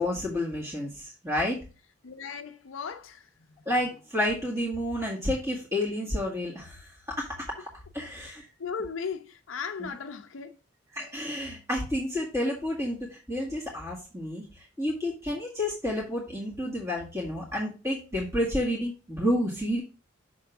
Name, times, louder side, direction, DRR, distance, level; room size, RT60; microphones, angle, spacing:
voice 1, 0.0-1.6 3.7-7.3 7.9-8.4 9.8-9.9 10.9-19.8, left 1 dB, 15° right, 2.0 m, -30 dB
voice 2, 2.0-3.3 8.2-10.6, left 6 dB, 80° left, 0.6 m, -37 dB
6.7 x 3.5 x 5.8 m
head